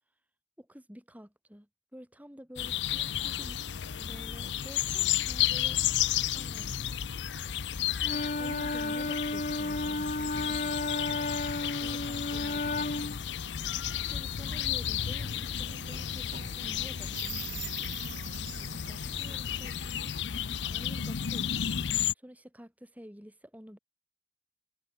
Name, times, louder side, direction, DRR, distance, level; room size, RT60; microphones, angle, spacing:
voice 1, 0.6-5.8 6.3-6.9 7.9-10.7 11.8-13.3 13.7-17.9 18.6-20.1 20.6-21.8 22.1-23.8, equal, 10° right, 6.8 m, -50 dB
sound 1, 2.6-22.1, left 10 dB, 80° left, 0.6 m, -33 dB
Wind instrument woodwind instrument, 8.0-13.2, left 2 dB, 45° left, 2.3 m, -33 dB
sound 2, 14.5-20.1, right 7 dB, 45° right, 1.7 m, -45 dB
head